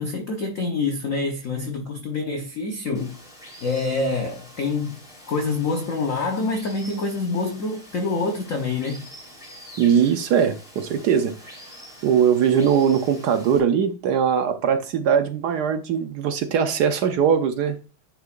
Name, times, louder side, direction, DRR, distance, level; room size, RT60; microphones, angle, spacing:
voice 1, 0.0-3.2 3.6-5.0 5.3-9.1, left 3 dB, 50° left, 1.0 m, -26 dB
Water, 2.9-13.6, equal, ahead, 3.4 m, -45 dB
voice 2, 9.8-11.5 12.0-17.8, right 7 dB, 70° right, 1.0 m, -21 dB
10.0 x 5.9 x 2.5 m
omnidirectional pair, 2.4 m